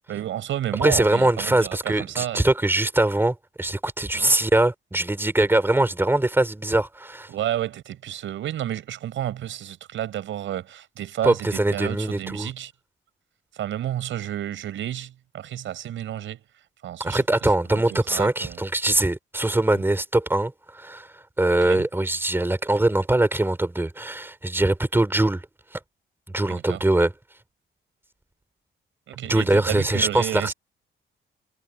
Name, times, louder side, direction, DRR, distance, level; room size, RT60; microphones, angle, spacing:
voice 1, 0.0-2.4 4.1-4.3 7.3-12.7 13.5-16.5 16.8-17.2 17.7-18.6 19.7-19.8 21.5-21.9 26.5-26.8 29.1-30.5, right 11 dB, 75° right, 5.7 m, -31 dB
voice 2, 0.8-7.3 11.2-12.5 17.0-25.4 26.3-27.1 29.3-30.5, right 2 dB, 10° right, 4.0 m, -22 dB
cardioid pair, 90°, 20 cm